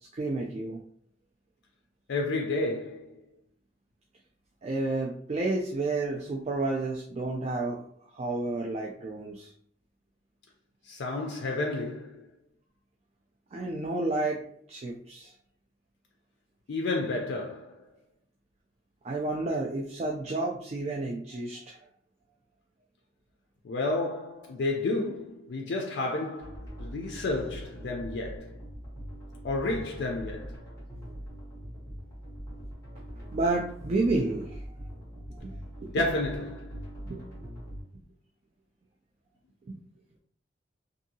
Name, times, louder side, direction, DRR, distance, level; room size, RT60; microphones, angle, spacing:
voice 1, 0.1-0.8 4.6-7.8 8.1-9.5 13.5-14.4 14.7-15.3 19.0-21.8 33.3-34.6 35.4-35.6 35.8-36.1 37.0-37.2 39.7-39.8, right 2 dB, 35° right, 0.3 m, -30 dB
voice 2, 2.1-3.2 10.8-12.3 16.7-17.8 23.6-28.6 29.4-30.6 35.9-36.9, left 2 dB, 60° left, 0.4 m, -31 dB
sound 1, 26.4-37.8, equal, 15° left, 1.2 m, -42 dB
2.7 x 2.6 x 2.7 m
head